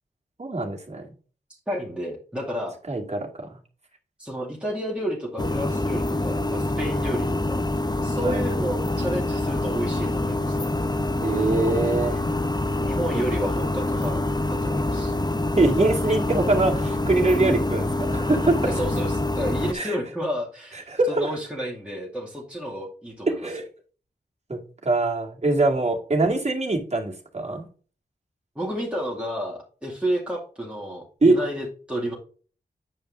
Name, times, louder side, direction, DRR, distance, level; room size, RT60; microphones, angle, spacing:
voice 1, 0.4-1.1 2.9-3.5 8.2-8.4 11.2-12.2 15.6-18.6 19.7-20.0 20.9-21.3 23.3-23.6 24.5-27.7 31.2-31.4, right 2 dB, 40° right, 1 dB, 2.2 m, -23 dB
voice 2, 1.7-2.8 4.2-7.6 8.0-10.6 12.8-15.2 18.6-23.5 28.6-32.1, equal, 5° right, -4 dB, 2.2 m, -31 dB
sound 1, 5.4-19.7, left 1 dB, 25° left, 0.8 m, -26 dB
9.2 x 5.4 x 2.6 m, 0.39 s
cardioid pair, 50°, 17 cm